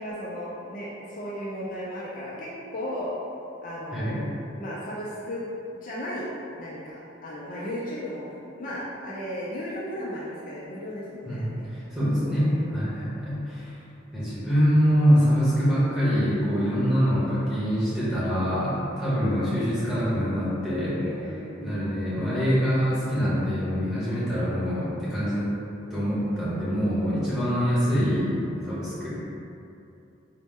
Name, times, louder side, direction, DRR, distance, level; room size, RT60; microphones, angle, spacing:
voice 1, 0.0-3.1 3.6-4.3 4.6-5.4 5.8-6.3 6.6-8.2 8.6-11.7 12.3-12.7 20.9-22.0 24.6-24.8, equal, 40° left, -7 dB, 0.4 m, -35 dB
voice 2, 11.2-13.7 14.1-21.0 21.6-25.5 25.9-29.1, equal, 5° right, -12 dB, 1.0 m, -24 dB
4.0 x 2.1 x 3.5 m, 2.7 s
head